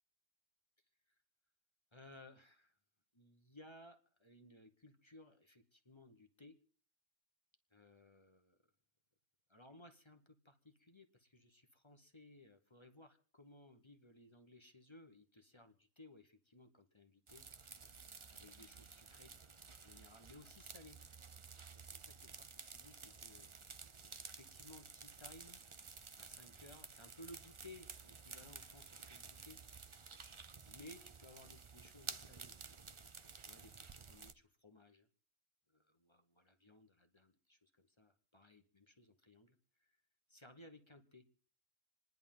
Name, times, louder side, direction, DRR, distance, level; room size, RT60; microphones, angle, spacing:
voice 1, 1.9-2.7 3.1-6.6 7.7-8.5 9.5-17.4 18.3-19.3 19.7-21.0 21.7-23.5 23.8-25.6 26.2-29.6 30.6-32.8 33.4-35.1 35.7-39.5 39.8-39.9 40.3-41.2, left 1 dB, 25° left, 7 dB, 1.2 m, -60 dB
sound 1, 17.3-34.3, right 5 dB, 30° right, 0.7 m, -53 dB
28.0 x 10.5 x 3.7 m, 0.44 s
omnidirectional pair, 1.1 m